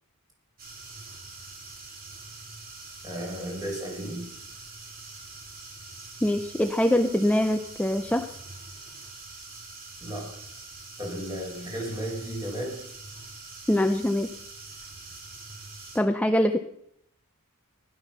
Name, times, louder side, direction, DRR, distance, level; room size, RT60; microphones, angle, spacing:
sound 1, 0.6-16.0, right 3 dB, 40° right, 2.8 m, -44 dB
voice 1, 3.0-4.2 10.0-10.3 11.0-12.8, equal, 15° right, -1 dB, 5.3 m, -34 dB
voice 2, 6.2-8.4 13.7-14.3 15.9-16.6, left 1 dB, 5° left, 7 dB, 0.5 m, -23 dB
16.0 x 12.0 x 5.8 m, 0.75 s
head